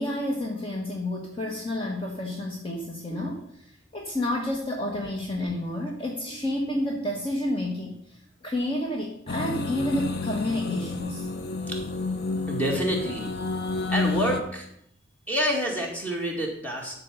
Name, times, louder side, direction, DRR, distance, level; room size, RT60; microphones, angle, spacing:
voice 1, 0.0-11.3, left 1 dB, 30° left, 0 dB, 1.2 m, -30 dB
sound 1, 9.3-14.4, left 3 dB, 55° left, 0.9 m, -30 dB
voice 2, 12.5-13.3 13.9-14.7 15.3-17.0, equal, 10° left, -1 dB, 2.1 m, -28 dB
12.0 x 4.5 x 6.8 m, 0.71 s
head